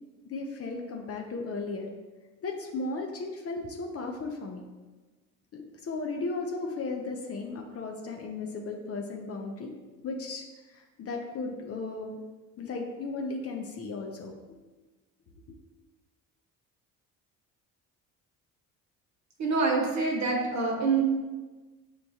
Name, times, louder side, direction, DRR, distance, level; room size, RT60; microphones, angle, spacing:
voice 1, 0.2-1.9 2.4-4.6 5.5-9.7 10.0-12.2 12.6-14.6, left 3 dB, 35° left, 2 dB, 0.6 m, -35 dB
voice 2, 19.4-21.0, right 4 dB, 45° right, -1 dB, 1.1 m, -26 dB
6.3 x 2.2 x 2.7 m, 1.2 s
hypercardioid pair, 60°, 41 cm